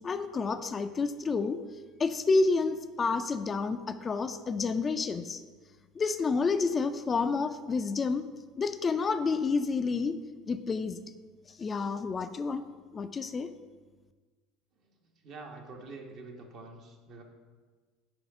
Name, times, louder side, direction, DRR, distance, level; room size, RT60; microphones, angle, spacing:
voice 1, 0.0-1.6 2.0-5.4 6.0-8.3 8.6-10.2 10.5-11.0 11.5-12.6 12.9-13.5, left 4 dB, 30° left, 9 dB, 0.4 m, -29 dB
voice 2, 15.2-17.2, right 3 dB, 55° right, 1 dB, 1.2 m, -46 dB
6.1 x 5.3 x 4.8 m, 1.4 s
hypercardioid pair, 85°, 0 cm